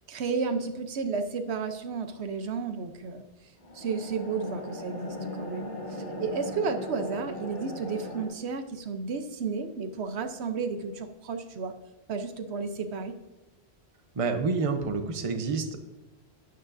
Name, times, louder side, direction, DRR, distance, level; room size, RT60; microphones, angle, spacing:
voice 1, 0.1-3.2 3.7-11.7 12.1-13.2, right 5 dB, 85° right, 8 dB, 1.1 m, -32 dB
sound 1, 3.6-8.3, equal, 70° left, 3.5 m, -38 dB
voice 2, 14.2-15.8, right 4 dB, 35° right, 7 dB, 0.8 m, -28 dB
12.0 x 9.5 x 2.6 m, 1.0 s
omnidirectional pair, 1.1 m